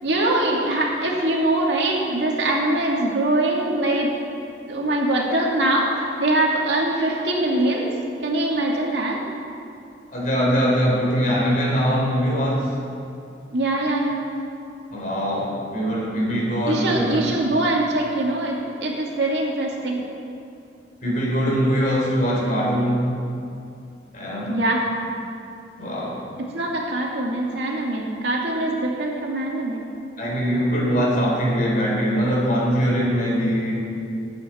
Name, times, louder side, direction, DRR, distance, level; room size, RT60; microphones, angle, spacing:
voice 1, 0.0-4.1 4.7-7.9 8.2-9.2 13.5-14.2 16.7-20.0 24.5-24.9 26.5-29.8, right 1 dB, 75° right, -2 dB, 2.2 m, -23 dB
voice 2, 10.1-12.7 14.9-17.2 21.0-23.1 24.1-24.5 25.8-26.2 30.2-33.8, equal, 45° left, -4 dB, 3.7 m, -22 dB
19.0 x 8.9 x 4.3 m, 2.6 s
head